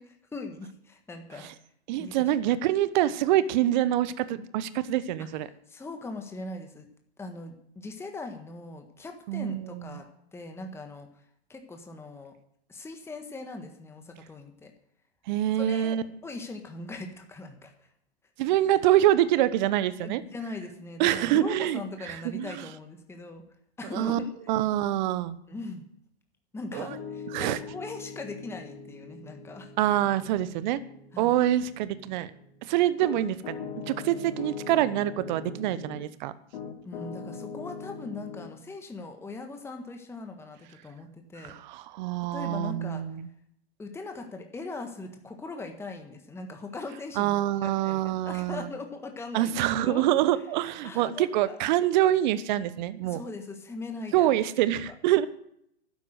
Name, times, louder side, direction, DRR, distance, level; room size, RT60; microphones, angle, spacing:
voice 1, 0.0-1.5 2.0-2.6 5.3-5.4 5.7-6.9 7.2-10.1 10.3-11.1 11.5-12.3 12.7-14.7 15.5-17.9 20.0-23.4 23.8-24.3 25.5-25.8 26.5-29.7 31.1-31.4 33.1-33.2 36.8-41.5 42.3-43.0 43.8-50.1 50.8-51.6 53.0-54.4 54.9-55.0, left 3 dB, 5° left, 4 dB, 1.5 m, -40 dB
voice 2, 1.9-5.5 9.3-9.9 15.3-16.0 18.4-20.2 21.0-21.8 22.1-22.6 23.9-24.2 24.5-25.4 26.7-26.9 27.3-27.6 29.8-30.8 31.2-32.3 32.6-33.6 33.9-36.3 41.4-43.3 47.2-48.7 49.3-53.2 54.1-55.3, right 13 dB, 45° right, 15 dB, 1.0 m, -25 dB
Piano, 26.7-36.1 36.5-38.5, left 5 dB, 55° left, 2.9 m, -42 dB
12.5 x 9.6 x 8.0 m, 0.71 s
hypercardioid pair, 115°, 33 cm